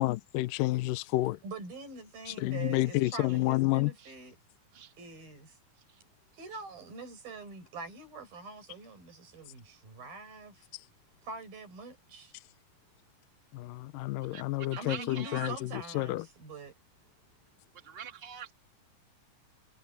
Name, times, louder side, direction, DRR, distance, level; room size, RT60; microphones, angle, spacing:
voice 1, 0.0-1.4 2.3-3.9 10.7-10.8 13.5-15.7 15.9-16.2, left 18 dB, 80° left, 2.2 m, -30 dB
voice 2, 1.4-4.4 5.0-5.6 6.3-10.7 11.2-12.4 14.8-16.7, right 3 dB, 80° right, 7.7 m, -44 dB
voice 3, 14.3-15.5 17.8-18.5, right 8 dB, 30° right, 1.1 m, -44 dB
omnidirectional pair, 4.1 m